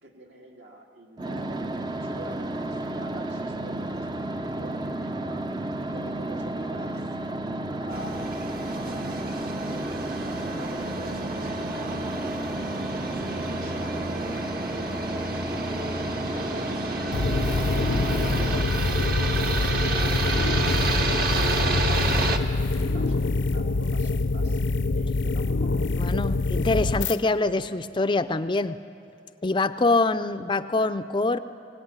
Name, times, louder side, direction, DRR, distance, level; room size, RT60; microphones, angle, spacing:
voice 1, 0.0-4.3 4.6-5.5 5.9-7.1 7.7-8.3 8.7-12.4 12.7-14.3 14.7-18.6 19.0-22.1 22.8-24.6 25.0-26.1, right 1 dB, 70° right, 0 dB, 2.5 m, -45 dB
sound 1, 1.2-18.6, right 1 dB, 25° right, 0.5 m, -32 dB
sound 2, 7.9-22.4, right 2 dB, 50° right, 1.4 m, -30 dB
sound 3, 17.1-27.2, left 3 dB, 75° left, 0.7 m, -25 dB
voice 2, 26.0-28.8 29.4-31.4, left 3 dB, 25° left, 10 dB, 0.5 m, -24 dB
23.5 x 17.5 x 9.7 m, 2.6 s
head